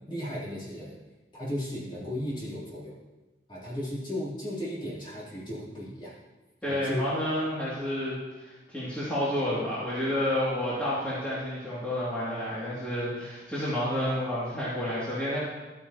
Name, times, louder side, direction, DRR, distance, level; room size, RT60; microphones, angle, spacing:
voice 1, 0.1-1.0 1.4-2.9 3.5-6.1 6.7-7.0, left 1 dB, 25° left, -8 dB, 3.3 m, -35 dB
voice 2, 6.6-15.4, left 1 dB, 10° left, -11 dB, 2.4 m, -30 dB
13.0 x 9.0 x 2.9 m, 1.1 s
head